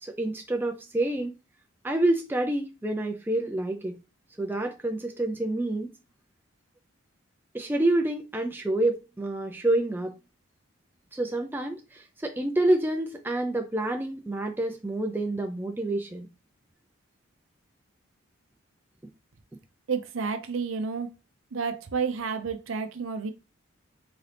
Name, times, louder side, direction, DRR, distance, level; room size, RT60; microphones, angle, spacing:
voice 1, 0.0-1.3 1.8-4.0 4.4-5.9 7.5-10.1 11.1-16.3, right 1 dB, 10° right, 0.4 m, -28 dB
voice 2, 19.9-21.1 21.5-23.3, right 5 dB, 70° right, 0.6 m, -30 dB
3.8 x 2.8 x 3.3 m
head